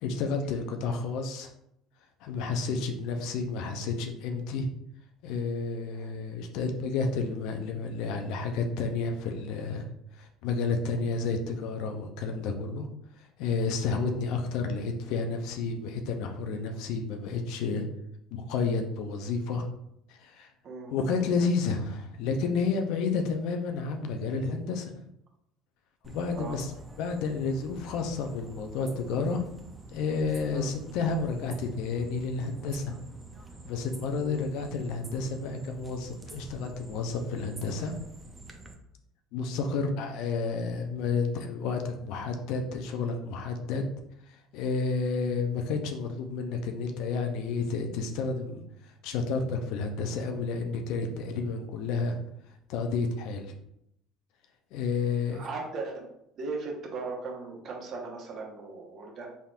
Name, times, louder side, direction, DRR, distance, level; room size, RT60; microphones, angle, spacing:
voice 1, 0.0-1.5 2.2-4.7 5.2-12.9 13.2-17.9 18.3-19.7 20.1-20.5 20.9-25.0 26.0-26.7 27.0-29.4 29.9-33.0 33.6-37.9 39.3-43.9 44.3-52.2 52.7-53.5 54.7-55.4, left 4 dB, 70° left, 5 dB, 0.5 m, -31 dB
voice 2, 20.6-21.2 26.4-26.6 30.5-30.7 34.2-34.4 39.6-39.8 55.3-56.1 56.3-59.3, right 3 dB, 50° right, 0 dB, 1.0 m, -38 dB
sound 1, 26.0-38.7, right 1 dB, 20° right, 0.7 m, -47 dB
4.0 x 3.5 x 2.4 m, 0.78 s
hypercardioid pair, 80°, 0 cm